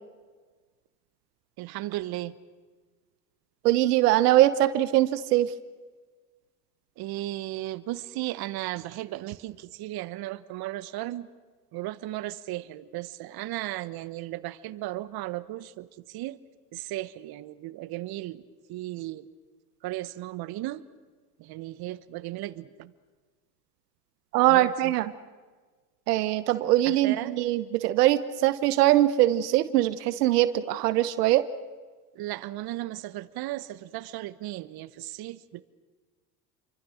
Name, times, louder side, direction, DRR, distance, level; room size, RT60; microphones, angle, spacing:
voice 1, 1.6-2.4 7.0-11.3 11.7-16.4 16.7-18.4 18.7-19.3 19.8-20.8 21.4-22.9 24.5-24.9 26.8-27.4 32.1-35.6, right 16 dB, 50° right, 14 dB, 1.2 m, -35 dB
voice 2, 3.6-5.5 24.3-25.1 26.1-31.4, right 14 dB, 75° right, 13 dB, 1.1 m, -22 dB
29.0 x 24.5 x 6.4 m, 1.4 s
hypercardioid pair, 80°, 47 cm